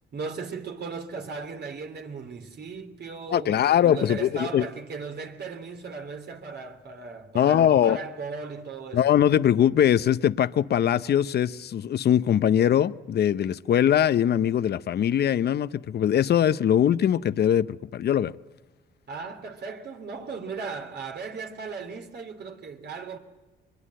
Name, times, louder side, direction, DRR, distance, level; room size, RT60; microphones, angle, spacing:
voice 1, 0.1-9.0 19.1-23.2, right 4 dB, 55° right, 3.0 m, -37 dB
voice 2, 3.3-4.7 7.3-8.0 8.9-18.3, left 10 dB, 55° left, 0.7 m, -22 dB
23.5 x 21.5 x 7.7 m
cardioid pair, 90°, 20 cm